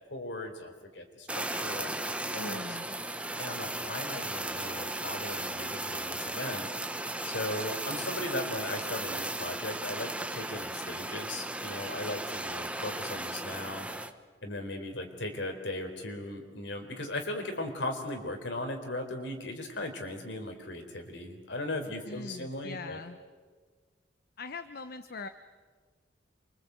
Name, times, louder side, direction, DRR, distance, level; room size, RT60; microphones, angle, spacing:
voice 1, 0.1-1.9 2.2-2.8 3.4-6.7 7.2-13.9 14.4-23.0, left 1 dB, 75° left, 5 dB, 4.4 m, -38 dB
Fire, 1.3-14.1, right 1 dB, 5° right, 1.1 m, -36 dB
voice 2, 2.3-2.9 22.1-23.2 24.4-25.3, left 3 dB, 55° left, 10 dB, 0.9 m, -41 dB
28.5 x 24.5 x 8.4 m, 1.5 s
head